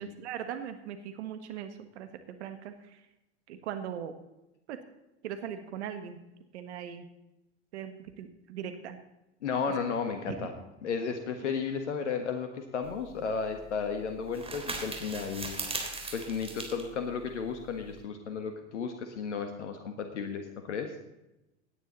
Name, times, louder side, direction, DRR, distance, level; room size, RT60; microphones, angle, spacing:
voice 1, 0.0-3.0 3.5-4.1 4.7-4.8 5.2-6.2 6.5-7.0 7.7-9.0 10.3-10.4, right 9 dB, 75° right, 8 dB, 1.6 m, -39 dB
voice 2, 9.4-10.5 10.8-15.6 16.1-20.9, left 5 dB, 85° left, 6 dB, 1.6 m, -33 dB
sound 1, 12.8-18.0, right 3 dB, 15° right, 3.6 m, -40 dB
17.5 x 9.7 x 4.0 m, 0.93 s
hypercardioid pair, 90°, 35 cm